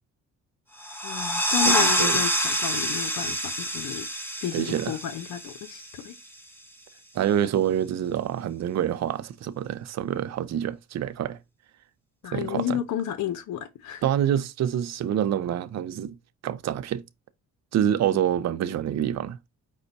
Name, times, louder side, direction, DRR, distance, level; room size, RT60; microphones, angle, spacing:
sound 1, 0.8-6.2, equal, 5° left, 1.1 m, -27 dB
voice 1, 1.0-4.1 4.4-6.1 12.2-14.1 18.1-18.3, left 10 dB, 70° left, 0.7 m, -32 dB
voice 2, 1.7-2.2 4.5-5.0 7.1-11.4 12.3-12.8 14.0-16.2 16.4-17.0 17.7-19.4, right 10 dB, 60° right, 0.6 m, -26 dB
5.3 x 2.2 x 4.0 m
cardioid pair, 90°, 30 cm